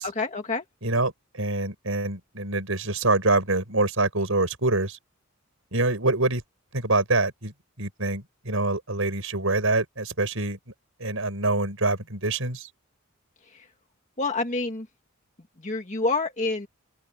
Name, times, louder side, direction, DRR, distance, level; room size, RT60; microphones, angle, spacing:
voice 1, 0.0-0.6 13.5-13.7 14.2-14.9 15.6-16.7, left 3 dB, 35° left, 1.9 m, -28 dB
voice 2, 0.8-5.0 5.7-6.4 6.7-7.5 7.8-10.6 11.0-12.7, right 2 dB, 70° right, 5.7 m, -25 dB
open air
head